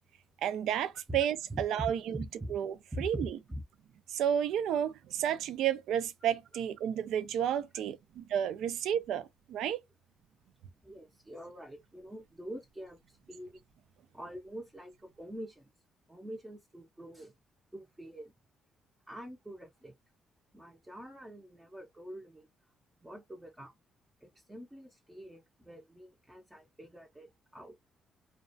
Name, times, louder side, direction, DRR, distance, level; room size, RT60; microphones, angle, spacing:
voice 1, 0.4-2.2 2.5-3.4 4.1-9.8, right 9 dB, 85° right, 0.3 m, -31 dB
voice 2, 1.5-2.6 2.9-3.6 7.7-7.8 10.8-13.6 14.1-15.7 16.1-17.3 17.7-18.3 19.1-19.9 20.5-22.5 23.0-23.7 24.2-27.8, equal, 10° right, 0.5 m, -44 dB
2.3 x 2.1 x 2.5 m
cardioid pair, 90°, 0 cm